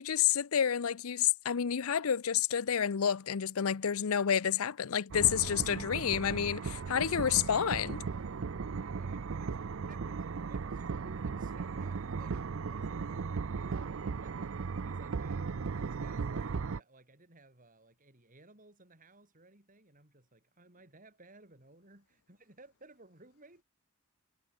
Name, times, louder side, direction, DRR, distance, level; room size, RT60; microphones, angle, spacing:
voice 1, 0.0-8.0, left 8 dB, 85° left, 0.6 m, -29 dB
sound 1, 5.1-16.8, right 5 dB, 65° right, 0.5 m, -37 dB
voice 2, 8.8-15.5 15.8-23.6, right 2 dB, 40° right, 5.5 m, -58 dB
head